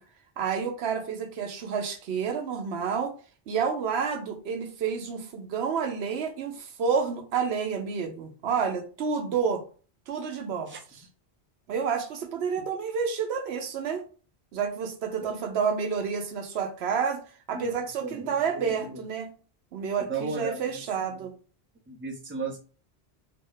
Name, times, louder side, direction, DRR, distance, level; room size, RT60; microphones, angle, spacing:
voice 1, 0.4-3.1 3.5-9.6 10.1-11.0 11.7-14.0 14.5-17.2 17.5-19.3 19.7-21.3, right 6 dB, 80° right, 0.9 m, -29 dB
voice 2, 18.0-19.0 20.1-20.8 21.9-22.6, right 4 dB, 15° right, 0.6 m, -35 dB
2.8 x 2.0 x 3.8 m
omnidirectional pair, 1.1 m